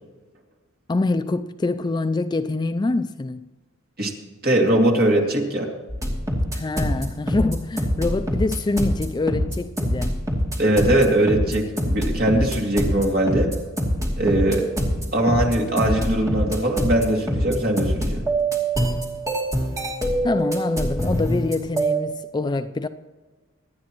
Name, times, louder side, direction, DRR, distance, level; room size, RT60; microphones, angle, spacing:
voice 1, 0.9-3.5 6.5-10.2 20.2-22.9, left 2 dB, 20° left, 0.3 m, -25 dB
voice 2, 4.4-5.7 10.6-13.5 14.2-14.6 15.1-18.3, right 1 dB, 45° right, 2.4 m, -20 dB
sound 1, 5.9-22.0, right 1 dB, 15° right, 2.6 m, -24 dB
25.5 x 9.6 x 3.0 m
head